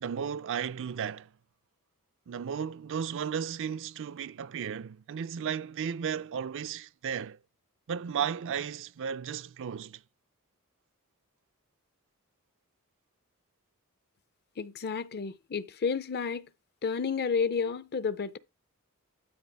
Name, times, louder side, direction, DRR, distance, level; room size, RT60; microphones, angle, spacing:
voice 1, 0.0-1.3 2.3-7.4 7.9-10.0, right 7 dB, 60° right, 0.4 m, -34 dB
voice 2, 14.6-16.5 16.8-18.4, left 5 dB, 50° left, 0.6 m, -31 dB
12.5 x 4.5 x 3.4 m
head